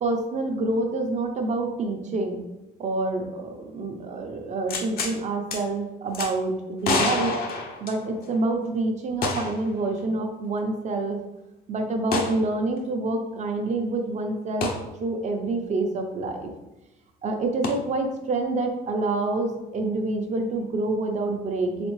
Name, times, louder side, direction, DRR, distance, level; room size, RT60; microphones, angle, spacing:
voice 1, 0.0-2.4 2.8-7.3 7.8-11.2 11.7-14.7 15.0-16.5 17.2-21.9, right 2 dB, 45° right, 4 dB, 0.7 m, -27 dB
sound 1, 4.7-5.2 5.5-5.6 6.1-6.3 6.8-8.3 9.2-9.7 10.0-10.1 12.1-12.4 14.6-14.8 17.6-17.7, left 3 dB, 65° left, 0.8 m, -27 dB
4.1 x 3.5 x 3.2 m, 0.98 s
cardioid pair, 110°, 17 cm